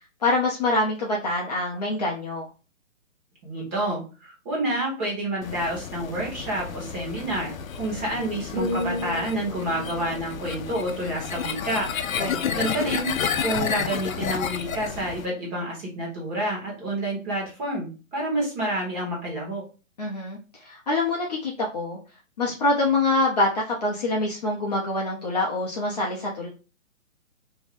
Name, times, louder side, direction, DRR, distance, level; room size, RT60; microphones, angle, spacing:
voice 1, 0.2-2.5 12.2-12.7 20.0-22.0 22.4-26.5, left 2 dB, 30° left, -3 dB, 0.5 m, -25 dB
voice 2, 3.4-11.9 12.5-13.1 13.4-19.6, right 1 dB, 20° right, -4 dB, 0.9 m, -29 dB
sound 1, 5.4-15.3, left 7 dB, 80° left, 0.5 m, -31 dB
sound 2, 8.6-12.5 13.0-13.2, left 1 dB, 45° right, 0.6 m, -35 dB
2.6 x 2.1 x 3.3 m, 0.33 s
hypercardioid pair, 140°, 40 cm